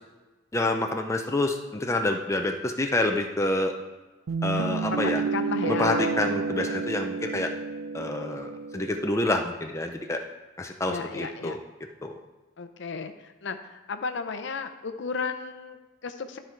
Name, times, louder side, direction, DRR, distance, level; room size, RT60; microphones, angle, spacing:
voice 1, 0.5-3.7 4.4-5.2 5.7-7.5 7.9-10.2 10.6-11.6 12.0-12.1, left 2 dB, 15° left, 3 dB, 0.5 m, -27 dB
Guitar, 4.3-9.3, right 4 dB, 75° right, 0.4 m, -30 dB
voice 2, 4.8-6.2 10.9-11.6 12.6-13.1 13.4-16.4, left 4 dB, 60° left, 8 dB, 0.6 m, -34 dB
11.5 x 4.4 x 4.5 m, 1.2 s
head